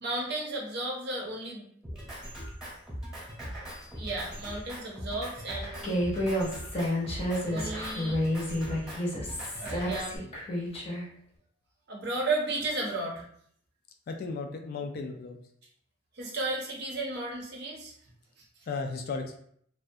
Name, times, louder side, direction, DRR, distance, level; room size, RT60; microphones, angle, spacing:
voice 1, 0.0-1.7 3.9-6.0 7.5-8.2 9.6-10.2 11.9-13.2 16.2-17.9, right 2 dB, 55° right, -1 dB, 0.7 m, -33 dB
Drum kit, 1.8-10.2, equal, 5° right, 0.9 m, -40 dB
Human voice, 5.8-11.0, equal, 30° left, 0.7 m, -30 dB
voice 2, 14.1-15.4 18.7-19.4, left 4 dB, 50° left, 4 dB, 0.3 m, -35 dB
2.4 x 2.1 x 2.6 m, 0.64 s
head